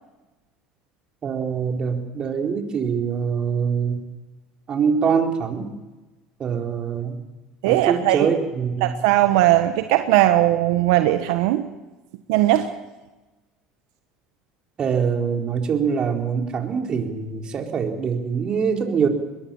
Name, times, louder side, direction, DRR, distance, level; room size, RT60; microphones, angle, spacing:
voice 1, 1.2-4.1 4.7-5.7 6.4-7.2 7.7-9.0 14.8-19.1, right 6 dB, 40° right, 3 dB, 4.4 m, -24 dB
voice 2, 7.6-8.3 8.8-11.6 12.3-12.7, right 14 dB, 75° right, 8 dB, 1.3 m, -18 dB
22.5 x 21.5 x 7.2 m, 1.1 s
hypercardioid pair, 85°, 2 cm